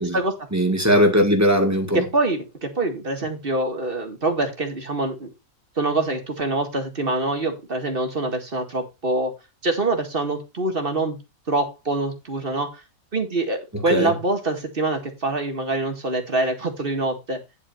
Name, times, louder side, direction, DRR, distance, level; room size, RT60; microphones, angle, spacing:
voice 1, 0.5-2.1 13.7-14.1, equal, 10° right, 1.8 m, -19 dB
voice 2, 1.9-5.3 5.8-9.3 9.6-11.2 11.5-12.8 13.1-17.4, right 2 dB, 35° right, 2.1 m, -25 dB
10.5 x 4.4 x 5.7 m
omnidirectional pair, 1.8 m